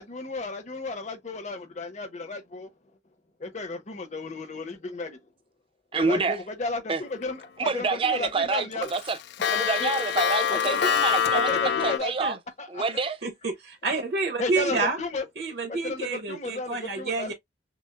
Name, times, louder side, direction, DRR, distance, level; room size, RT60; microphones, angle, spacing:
voice 1, 0.0-2.7 3.4-5.2 5.9-8.9 9.8-10.0 10.5-10.9 11.3-12.1 12.6-12.8 14.4-15.3 15.7-17.3, left 3 dB, 40° left, 0.8 m, -33 dB
voice 2, 5.9-6.4 6.9-7.0 7.6-9.2 9.5-12.4 12.7-13.2 14.7-14.8, right 4 dB, 30° right, 0.4 m, -27 dB
Clock, 7.2-7.7 8.1-8.2 8.5-12.0, left 7 dB, 65° left, 0.3 m, -25 dB
voice 3, 13.2-15.0 15.4-17.3, right 3 dB, 60° right, 0.8 m, -29 dB
6.0 x 2.0 x 2.3 m
head